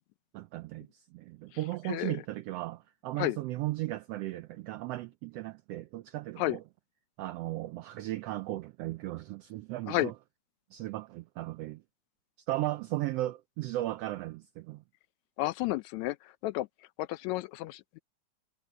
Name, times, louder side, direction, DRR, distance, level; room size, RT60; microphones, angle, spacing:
voice 1, 0.3-6.6 7.2-10.1 10.7-11.8 12.5-14.8, right 16 dB, 90° right, 1.4 m, -36 dB
voice 2, 15.4-16.7 17.0-18.0, left 17 dB, 80° left, 1.8 m, -32 dB
omnidirectional pair, 3.4 m